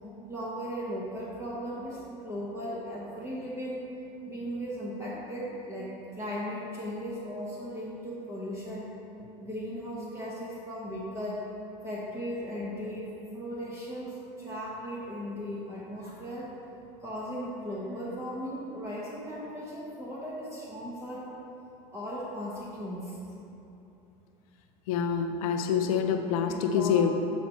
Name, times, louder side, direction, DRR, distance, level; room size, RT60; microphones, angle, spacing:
voice 1, 0.3-3.8 4.3-8.9 9.4-11.4 11.8-16.5 17.0-21.2 21.9-23.2 26.5-27.0, equal, 15° right, -7 dB, 1.3 m, -37 dB
voice 2, 24.9-27.1, left 7 dB, 85° left, 6 dB, 0.6 m, -26 dB
8.4 x 4.2 x 4.5 m, 2.9 s
supercardioid pair, 90°, 18 cm